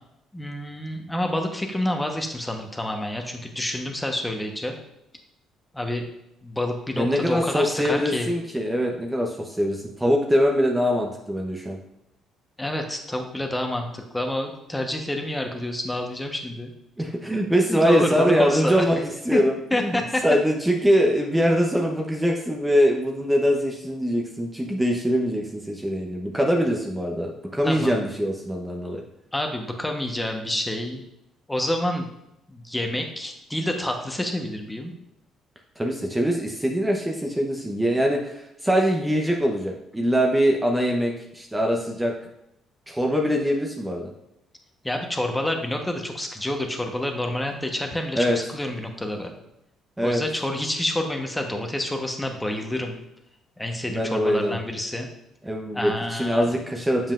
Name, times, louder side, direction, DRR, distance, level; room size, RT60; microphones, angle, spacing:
voice 1, 0.3-4.8 5.7-6.0 6.4-8.3 12.6-16.7 17.7-18.8 19.3-19.4 19.7-20.2 27.6-28.1 29.3-31.0 31.5-32.1 32.5-34.9 44.8-49.3 50.0-53.0 53.6-55.1 55.7-56.5, left 1 dB, 10° left, 3 dB, 1.1 m, -28 dB
voice 2, 7.0-11.8 17.0-29.0 35.8-42.1 42.9-44.1 48.1-48.4 50.0-50.2 53.9-54.6 55.4-57.1, equal, 10° right, 1 dB, 0.8 m, -23 dB
7.3 x 5.4 x 2.5 m, 0.83 s
hypercardioid pair, 60°, 0 cm